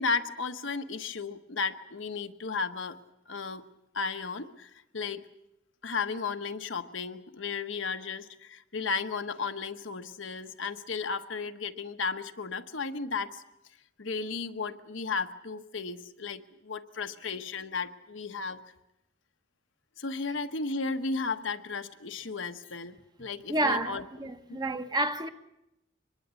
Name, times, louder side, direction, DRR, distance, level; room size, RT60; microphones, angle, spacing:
voice 1, 0.0-3.0 3.3-3.6 3.9-5.3 5.8-13.4 14.0-18.6 20.0-24.6, left 4 dB, 75° left, 1.2 m, -34 dB
voice 2, 23.5-25.3, right 1 dB, 20° right, 1.2 m, -29 dB
24.0 x 21.5 x 8.3 m
head